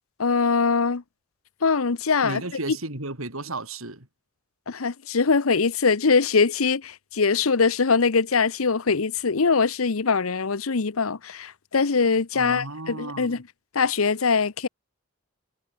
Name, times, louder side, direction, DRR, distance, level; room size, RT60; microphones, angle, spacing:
voice 1, 0.2-1.0 1.6-2.4 4.7-13.4 13.7-14.7, left 5 dB, 85° left, 0.9 m, -22 dB
voice 2, 2.2-4.1 12.3-13.4, right 2 dB, 80° right, 4.9 m, -34 dB
head